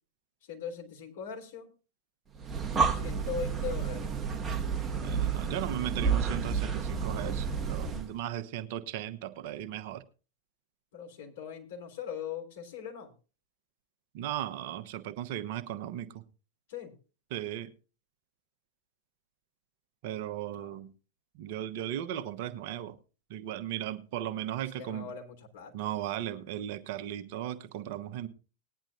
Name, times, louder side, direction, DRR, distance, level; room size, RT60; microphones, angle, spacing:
voice 1, 0.4-1.7 2.9-4.1 10.9-13.1 16.7-16.9 20.5-20.8 24.8-25.7, left 7 dB, 55° left, 3.5 m, -40 dB
Breathing, 2.3-8.1, right 6 dB, 20° right, 1.2 m, -30 dB
voice 2, 4.9-10.0 14.1-16.2 17.3-17.7 20.0-20.9 21.3-23.0 23.3-25.1 25.7-28.3, right 11 dB, 50° right, 1.0 m, -36 dB
19.5 x 10.5 x 2.4 m
figure-of-eight pair, 90°, 0 cm